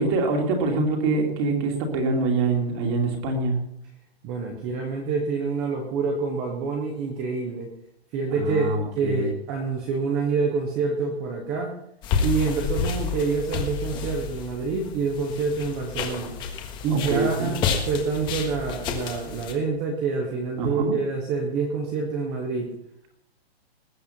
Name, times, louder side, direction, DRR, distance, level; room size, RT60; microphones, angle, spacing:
voice 1, 0.0-3.6 8.3-9.3 16.9-17.5 20.6-21.0, right 3 dB, 25° right, 3 dB, 2.6 m, -25 dB
voice 2, 4.2-7.7 8.1-8.7 9.0-11.7 12.2-16.4 16.8-17.6 17.9-22.8, right 4 dB, 5° right, 2 dB, 0.4 m, -27 dB
sound 1, 12.0-19.5, left 6 dB, 15° left, 1.4 m, -30 dB
19.5 x 8.4 x 5.7 m, 0.77 s
hypercardioid pair, 170°, 32 cm